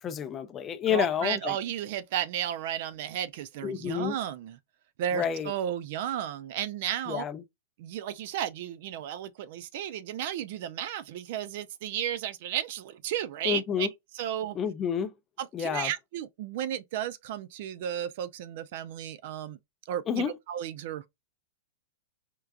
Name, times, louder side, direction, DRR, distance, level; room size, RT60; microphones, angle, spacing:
voice 1, 0.0-1.6 3.6-4.2 5.1-5.5 7.1-7.4 13.4-13.9 14.5-15.1 15.5-15.9 20.1-20.3, left 8 dB, 20° left, 0.4 m, -29 dB
voice 2, 0.9-4.6 5.0-7.2 7.8-13.9 14.1-14.6 15.4-19.6 19.9-21.1, right 10 dB, 50° right, 0.4 m, -33 dB
4.4 x 2.4 x 2.4 m
supercardioid pair, 155°, 0 cm